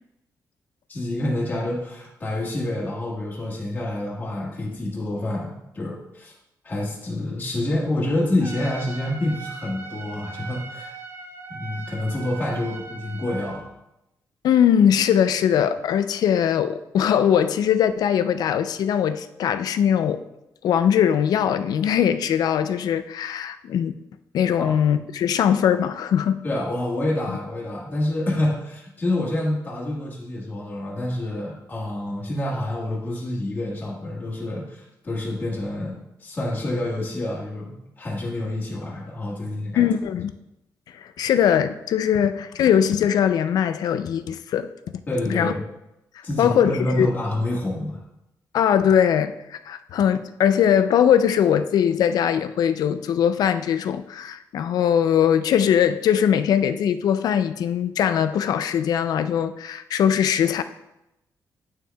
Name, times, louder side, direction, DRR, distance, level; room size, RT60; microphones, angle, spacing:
voice 1, 0.9-6.3 6.6-10.9 11.5-13.7 24.6-24.8 26.4-39.8 45.1-45.6 46.2-48.0, left 1 dB, 25° left, -5 dB, 1.5 m, -27 dB
Trumpet, 8.4-13.6, right 4 dB, 40° right, 0.7 m, -39 dB
voice 2, 14.4-20.2 20.6-24.0 24.3-26.4 39.8-40.3 40.9-44.7 45.3-45.5 46.4-47.1 48.5-60.6, left 9 dB, 75° left, 11 dB, 0.4 m, -21 dB
8.8 x 6.3 x 2.3 m, 0.88 s
wide cardioid pair, 165°, 7 cm